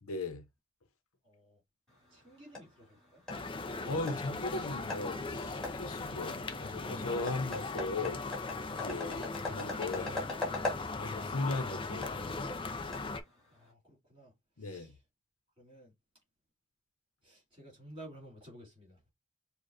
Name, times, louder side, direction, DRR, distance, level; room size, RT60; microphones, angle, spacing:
voice 1, 0.0-0.4 3.8-8.2 8.7-10.2 11.0-12.5 14.6-14.9, left 2 dB, 75° left, 0.9 m, -38 dB
voice 2, 1.2-1.6 2.1-3.2 13.5-14.3 14.6-15.0 15.6-15.9 17.2-19.0, right 1 dB, 25° right, 3.1 m, -53 dB
sound 1, 1.9-13.7, left 2 dB, ahead, 2.4 m, -43 dB
sound 2, 3.3-13.2, left 3 dB, 25° left, 0.5 m, -39 dB
6.6 x 2.4 x 2.6 m
head